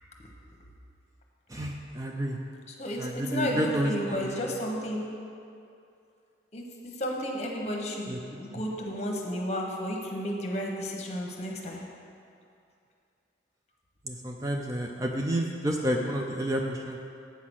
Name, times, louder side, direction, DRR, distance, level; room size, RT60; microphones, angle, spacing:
voice 1, 1.5-2.4 3.0-4.5 8.1-8.6 14.0-17.0, equal, 20° right, 1 dB, 0.4 m, -30 dB
voice 2, 2.8-5.0 6.5-11.8, equal, 35° left, 0 dB, 1.1 m, -32 dB
8.3 x 5.8 x 6.3 m, 2.5 s
head